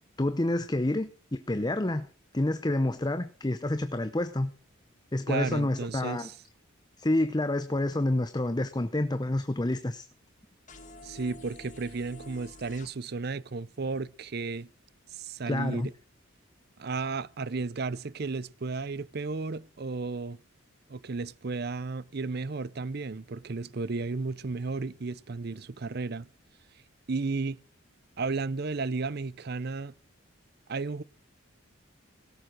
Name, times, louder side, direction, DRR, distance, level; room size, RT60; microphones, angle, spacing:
voice 1, 0.2-2.1 2.3-4.5 5.1-6.3 7.0-10.1 15.5-15.9, left 1 dB, 20° left, 0.7 m, -28 dB
voice 2, 5.3-6.4 11.0-14.7 15.1-15.9 16.8-20.4 20.9-26.3 27.1-27.6 28.2-29.9 30.7-31.0, right 4 dB, 50° right, 0.6 m, -33 dB
sound 1, 10.7-12.9, left 1 dB, 40° left, 1.6 m, -48 dB
17.5 x 7.5 x 6.2 m
head